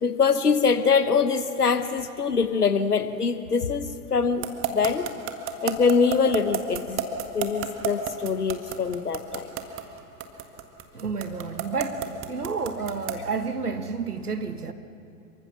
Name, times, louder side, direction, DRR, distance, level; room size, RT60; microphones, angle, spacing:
voice 1, 0.0-5.1 5.6-9.5, left 5 dB, 85° left, 11 dB, 1.3 m, -24 dB
sound 1, 4.4-13.3, right 10 dB, 30° right, 1.8 m, -30 dB
voice 2, 10.9-14.7, right 4 dB, 85° right, 9 dB, 1.5 m, -30 dB
27.0 x 24.0 x 6.1 m, 2.7 s
figure-of-eight pair, 100°, 45 cm